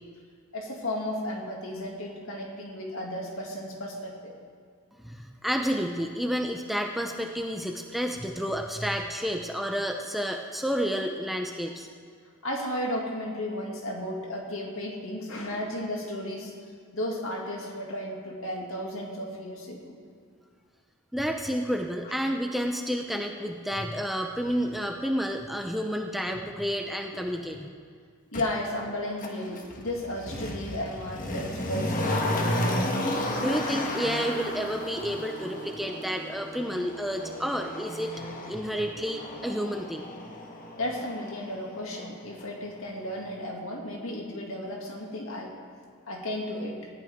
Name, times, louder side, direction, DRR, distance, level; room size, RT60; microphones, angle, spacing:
voice 1, 0.5-4.3 12.4-16.5 16.9-19.9 27.1-27.3 28.3-32.5 40.8-45.5 46.1-46.9, left 1 dB, 60° left, -1 dB, 2.4 m, -34 dB
voice 2, 5.0-11.9 21.1-27.7 33.0-40.1, equal, ahead, 2 dB, 0.6 m, -30 dB
Motor vehicle (road), 28.3-28.4 29.2-42.1 42.4-42.5, left 1 dB, 35° left, 1.5 m, -33 dB
19.5 x 14.5 x 3.7 m, 2.1 s
head